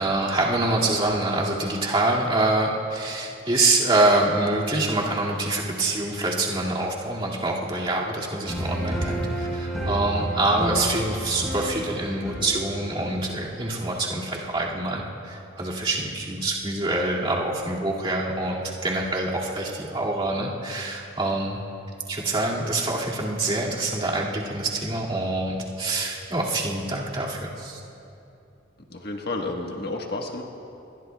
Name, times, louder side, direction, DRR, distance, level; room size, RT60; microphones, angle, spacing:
voice 1, 0.0-21.6 22.1-27.8, right 2 dB, 30° right, -5 dB, 2.3 m, -25 dB
sound 1, 8.5-13.7, right 1 dB, ahead, 4.5 m, -31 dB
voice 2, 28.9-30.4, left 2 dB, 55° left, 1 dB, 1.4 m, -31 dB
29.0 x 21.0 x 2.3 m, 2.8 s
head